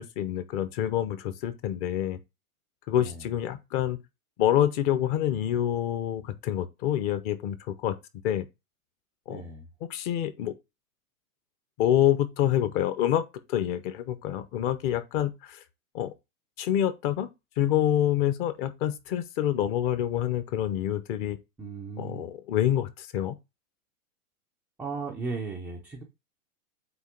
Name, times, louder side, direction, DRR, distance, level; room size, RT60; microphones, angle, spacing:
voice 1, 0.0-2.2 2.9-4.0 4.4-7.9 8.2-8.5 9.3-9.4 9.9-10.5 11.8-13.2 13.5-15.6 15.9-16.1 16.6-17.3 17.6-21.4 22.0-23.3, left 11 dB, 30° left, 0.8 m, -27 dB
voice 2, 9.3-9.7 21.6-22.3 24.8-26.0, right 4 dB, 5° right, 0.4 m, -36 dB
8.1 x 2.9 x 5.8 m
hypercardioid pair, 145°, 44 cm